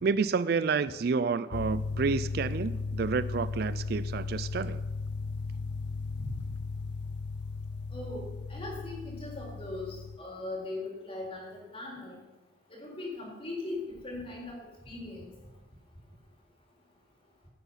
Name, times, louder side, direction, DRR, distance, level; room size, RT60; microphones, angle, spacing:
voice 1, 0.0-4.8, right 5 dB, 55° right, 16 dB, 0.3 m, -29 dB
sound 1, 1.5-10.2, left 4 dB, 65° left, 0.4 m, -36 dB
voice 2, 7.9-8.2 8.5-12.2 12.8-13.8 14.0-14.6 14.8-15.3, left 2 dB, 30° left, -3 dB, 3.8 m, -39 dB
16.5 x 8.1 x 5.6 m, 1.2 s
head